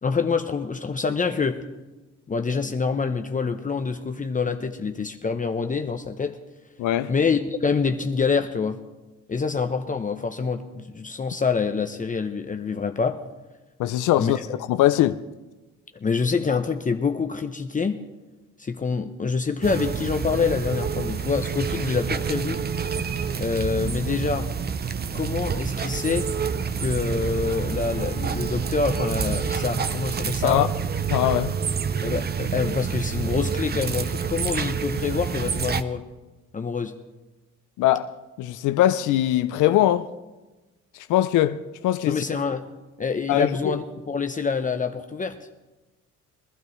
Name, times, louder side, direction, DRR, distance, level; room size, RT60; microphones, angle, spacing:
voice 1, 0.0-1.6 2.3-6.4 7.1-8.8 9.3-13.2 14.2-14.3 16.0-18.0 18.6-22.6 23.4-24.5 25.1-26.3 26.8-30.7 32.0-36.0 36.5-36.9 42.1-42.7 43.0-45.4, left 5 dB, 25° left, 0.7 m, -26 dB
voice 2, 6.8-7.1 13.8-14.4 14.7-15.2 30.4-30.7 31.1-31.6 37.8-38.1 38.4-40.1 41.1-41.6 41.8-42.2 43.3-43.8, left 13 dB, 80° left, 0.5 m, -21 dB
sound 1, 19.6-35.8, right 6 dB, 35° right, 0.7 m, -28 dB
22.5 x 12.0 x 3.2 m
cardioid pair, 90°, 30 cm